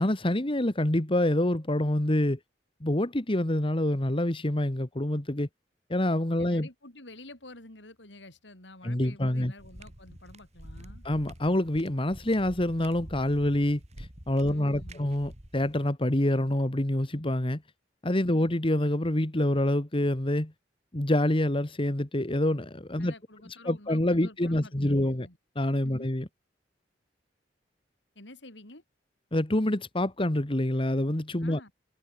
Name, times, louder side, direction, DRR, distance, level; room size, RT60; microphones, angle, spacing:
voice 1, 0.0-2.4 2.8-5.5 5.9-6.7 8.8-9.5 11.0-17.6 18.0-20.5 20.9-23.1 23.7-25.3 25.6-26.3 29.3-31.6, left 1 dB, 30° left, 1.7 m, -26 dB
voice 2, 6.4-11.1 14.4-15.0 23.0-25.4 25.8-26.1 28.2-28.8 31.4-31.7, left 2 dB, 85° left, 7.1 m, -49 dB
sound 1, 9.6-15.7, right 1 dB, 40° right, 4.7 m, -47 dB
head